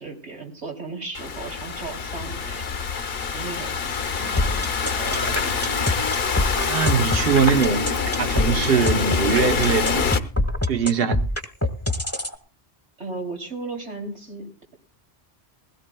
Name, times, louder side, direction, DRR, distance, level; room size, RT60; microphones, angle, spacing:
voice 1, 0.0-3.1 3.3-4.2 4.8-5.7 13.0-14.7, right 3 dB, 85° right, 3.4 m, -36 dB
Thunderstorm / Rain, 1.2-10.2, left 6 dB, 65° left, 1.1 m, -26 dB
sound 1, 4.2-9.8, right 3 dB, 35° right, 1.0 m, -39 dB
sound 2, 4.4-12.3, left 1 dB, 15° left, 1.1 m, -24 dB
voice 2, 6.7-7.9 8.2-10.1 10.7-11.2, right 6 dB, 65° right, 1.1 m, -22 dB
21.0 x 17.0 x 2.3 m
omnidirectional pair, 1.1 m